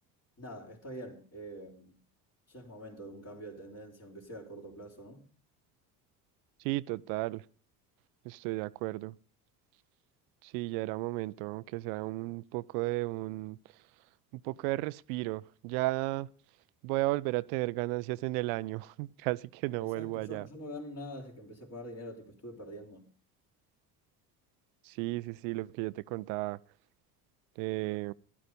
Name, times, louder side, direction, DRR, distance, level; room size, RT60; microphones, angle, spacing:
voice 1, 0.4-2.0 2.5-5.2 19.8-23.1, equal, 30° left, 3.8 m, -45 dB
voice 2, 6.6-7.4 8.2-9.1 10.4-13.6 14.3-16.3 16.8-20.5 24.9-26.6 27.6-28.1, right 20 dB, 70° right, 0.7 m, -34 dB
14.5 x 11.5 x 5.2 m
hypercardioid pair, 70°, 47 cm